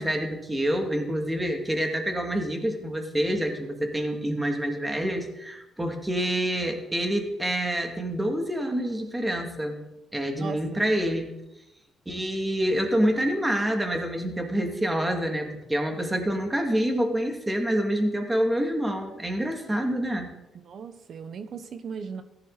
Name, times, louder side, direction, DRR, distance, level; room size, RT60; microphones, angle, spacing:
voice 1, 0.0-9.8 10.1-11.3 12.1-20.3, equal, 10° right, 3 dB, 2.5 m, -27 dB
voice 2, 10.4-10.8 20.6-22.2, right 6 dB, 60° right, 10 dB, 1.2 m, -37 dB
15.5 x 11.0 x 4.2 m, 0.91 s
cardioid pair, 90°, 0 cm